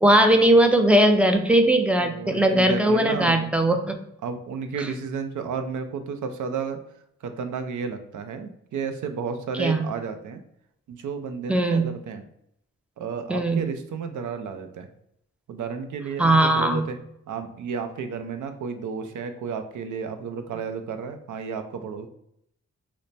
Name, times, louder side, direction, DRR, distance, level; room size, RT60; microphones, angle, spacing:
voice 1, 0.0-4.0 9.6-9.8 11.5-11.9 13.3-13.6 16.2-16.8, right 1 dB, 5° right, 5 dB, 0.4 m, -19 dB
voice 2, 2.0-3.7 4.2-6.8 7.2-10.4 10.9-12.2 13.0-14.9 15.5-17.0 17.3-22.1, right 5 dB, 80° right, 8 dB, 0.5 m, -32 dB
3.2 x 2.0 x 4.0 m, 0.75 s
wide cardioid pair, 95°, 29 cm